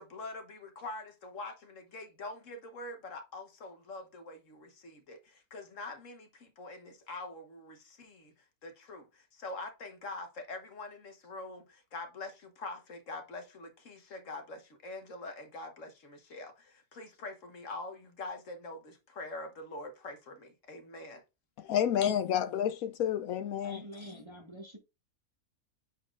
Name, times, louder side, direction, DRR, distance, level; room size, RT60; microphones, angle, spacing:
voice 1, 0.0-8.3 8.6-21.2, left 2 dB, 60° left, 1.5 m, -44 dB
voice 2, 21.6-23.8, left 9 dB, 75° left, 1.0 m, -30 dB
voice 3, 23.6-24.8, equal, 20° right, 1.1 m, -46 dB
9.1 x 4.3 x 2.5 m
omnidirectional pair, 1.5 m